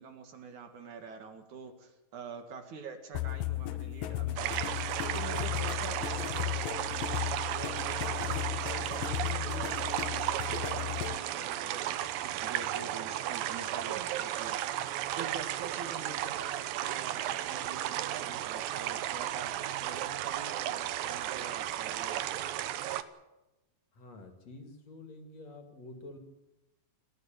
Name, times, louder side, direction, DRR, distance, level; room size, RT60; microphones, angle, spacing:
voice 1, 0.0-4.7 5.1-14.6 15.2-22.4, right 5 dB, 60° right, 6 dB, 3.1 m, -46 dB
sound 1, 3.1-11.2, left 15 dB, 75° left, 2.5 m, -35 dB
sound 2, 4.4-23.0, right 12 dB, 75° right, 2.6 m, -34 dB
voice 2, 23.9-26.2, left 2 dB, 50° left, 6 dB, 3.3 m, -48 dB
29.0 x 12.0 x 9.0 m, 1.0 s
omnidirectional pair, 4.1 m